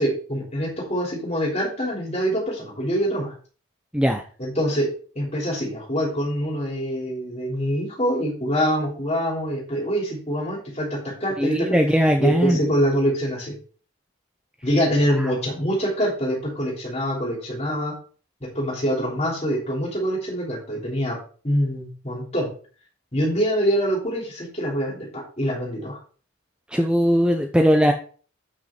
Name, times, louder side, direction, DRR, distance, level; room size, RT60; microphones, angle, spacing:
voice 1, 0.0-3.3 4.4-4.9 5.1-11.7 12.2-13.5 14.6-17.9 18.5-21.2 21.4-22.5 23.1-26.0, equal, 30° left, -2 dB, 3.1 m, -25 dB
voice 2, 11.4-12.6 15.2-15.3 26.7-27.9, equal, 5° right, 3 dB, 0.6 m, -19 dB
7.9 x 6.3 x 4.3 m, 0.40 s
head